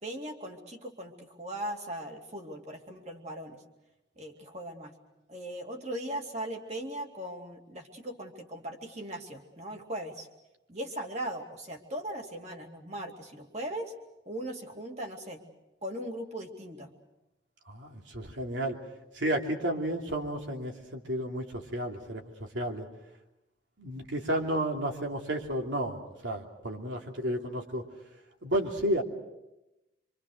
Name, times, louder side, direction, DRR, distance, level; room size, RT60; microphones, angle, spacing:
voice 1, 0.0-3.6 4.2-4.9 5.3-10.3 10.7-13.9 14.3-15.4 15.8-16.9, right 1 dB, 35° right, 3 dB, 2.5 m, -39 dB
voice 2, 17.7-18.8 19.1-22.9 23.8-27.8 28.4-29.0, right 1 dB, 80° right, 2 dB, 2.9 m, -32 dB
26.0 x 25.0 x 6.5 m, 0.95 s
head